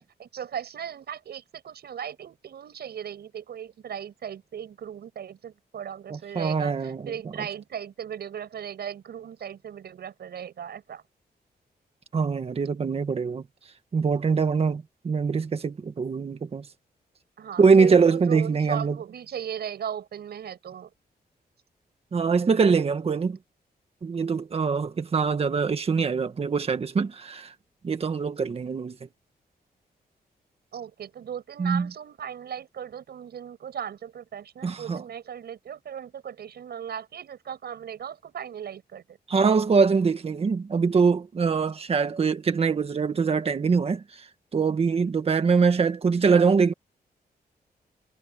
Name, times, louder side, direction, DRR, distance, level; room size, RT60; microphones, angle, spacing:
voice 1, 0.0-11.0 17.4-20.9 30.7-39.2, right 8 dB, 80° right, 6.7 m, -37 dB
voice 2, 6.1-7.1 12.1-13.4 13.9-16.6 17.6-19.0 22.1-23.4 24.0-27.5 27.8-29.0 31.6-31.9 34.6-35.0 39.3-44.0 44.5-46.7, right 5 dB, 35° right, 1.7 m, -23 dB
wide cardioid pair, 180°, 17 cm